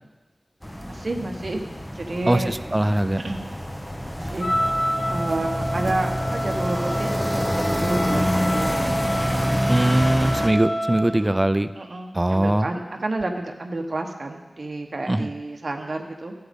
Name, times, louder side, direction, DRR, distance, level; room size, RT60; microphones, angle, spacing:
sound 1, 0.6-10.5, equal, 10° left, 0.9 m, -27 dB
voice 1, 0.9-1.6 1.9-2.5 3.2-3.4 4.1-4.5 5.1-9.0 10.9-11.4 11.8-16.3, right 2 dB, 60° right, 3 dB, 1.1 m, -30 dB
voice 2, 2.3-3.2 9.7-11.7 12.1-12.7 15.1-15.3, right 1 dB, 25° right, 11 dB, 0.5 m, -21 dB
Wind instrument woodwind instrument, 4.4-11.2, equal, 60° left, 1.8 m, -28 dB
14.0 x 7.9 x 3.7 m, 1.2 s
wide cardioid pair, 65°, 0 cm